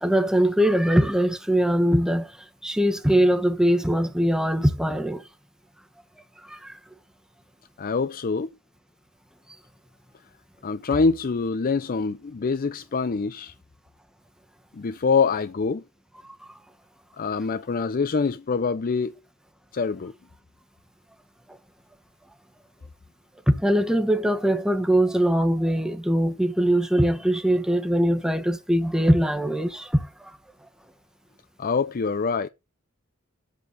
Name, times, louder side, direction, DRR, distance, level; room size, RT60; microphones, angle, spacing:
voice 1, 0.0-2.4 2.6-5.2 6.4-6.8 23.5-30.3, equal, 5° right, 1.2 m, -22 dB
voice 2, 7.8-8.5 10.6-13.5 14.7-15.8 17.2-19.1 19.7-20.1 31.6-32.5, left 4 dB, 40° left, 0.5 m, -25 dB
8.2 x 6.8 x 8.1 m
head